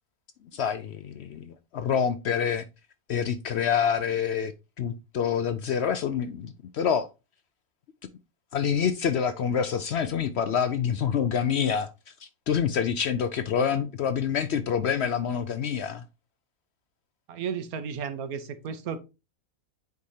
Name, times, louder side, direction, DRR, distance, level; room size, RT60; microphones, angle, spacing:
voice 1, 0.5-2.6 3.1-4.5 4.8-7.1 8.5-16.0, left 7 dB, 65° left, 0.7 m, -27 dB
voice 2, 17.3-19.0, right 6 dB, 85° right, 1.3 m, -33 dB
8.4 x 4.9 x 2.7 m
omnidirectional pair, 1.5 m